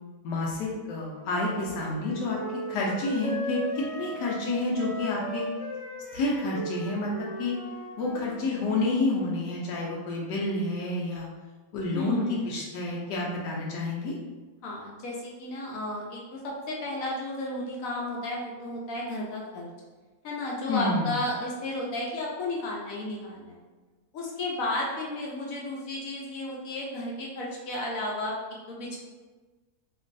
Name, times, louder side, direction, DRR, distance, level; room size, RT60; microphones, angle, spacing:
voice 1, 0.2-2.4 2.7-3.6 3.9-5.5 6.1-7.1 7.4-7.5 8.0-11.3 11.7-14.1 20.7-21.1, left 2 dB, 85° left, -3 dB, 1.2 m, -29 dB
Wind instrument woodwind instrument, 1.1-8.4, right 1 dB, 20° right, 1.4 m, -38 dB
voice 2, 11.9-12.5 14.6-19.7 20.2-23.6 24.1-28.4 28.7-29.0, left 1 dB, 65° left, -3 dB, 0.9 m, -33 dB
3.0 x 2.5 x 2.5 m, 1.3 s
omnidirectional pair, 1.8 m